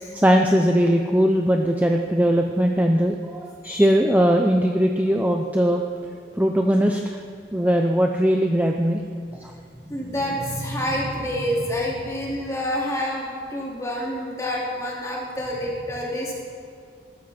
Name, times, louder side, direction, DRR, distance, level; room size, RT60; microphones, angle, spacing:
voice 1, 0.1-5.8 6.4-7.2 7.5-9.0 9.4-9.5, equal, 10° right, 3 dB, 0.6 m, -20 dB
voice 2, 9.7-16.3, equal, 15° left, -3 dB, 2.7 m, -28 dB
20.0 x 13.0 x 4.4 m, 2.3 s
head